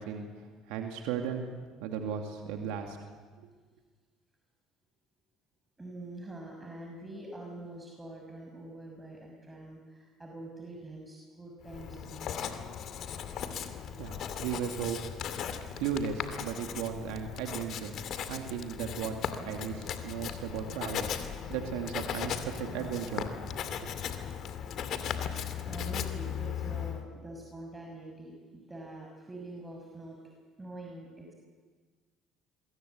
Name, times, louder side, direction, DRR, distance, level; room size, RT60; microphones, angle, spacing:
voice 1, 0.0-1.5 1.8-3.0 14.0-15.0 15.8-17.9 18.3-19.2 19.4-23.3, right 8 dB, 70° right, 3 dB, 2.5 m, -36 dB
voice 2, 5.8-12.3 25.6-30.2 30.6-31.3, right 1 dB, 15° right, 0 dB, 6.1 m, -45 dB
Writing, 11.6-27.0, left 8 dB, 55° left, 2.4 m, -37 dB
27.0 x 23.0 x 8.3 m, 1.5 s
hypercardioid pair, 60°, 0 cm